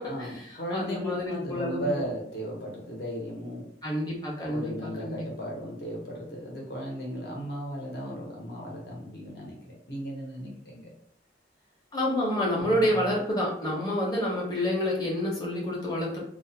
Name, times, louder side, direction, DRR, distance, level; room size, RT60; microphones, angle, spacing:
voice 1, 0.1-3.6 4.5-10.9 12.6-13.0, equal, 65° left, -2 dB, 0.8 m, -36 dB
voice 2, 0.7-2.1 3.8-5.2 11.9-16.2, left 1 dB, 20° left, -4 dB, 0.6 m, -28 dB
2.4 x 2.1 x 2.7 m, 0.68 s
head